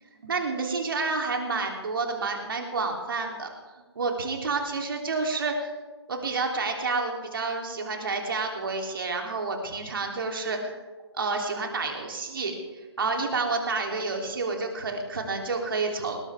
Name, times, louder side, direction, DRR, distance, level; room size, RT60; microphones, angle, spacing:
voice 1, 0.2-3.5 3.9-5.7 6.1-10.8 11.1-16.2, right 3 dB, 50° right, 2 dB, 3.3 m, -29 dB
20.5 x 19.5 x 3.6 m, 1.3 s
figure-of-eight pair, 140°, 14 cm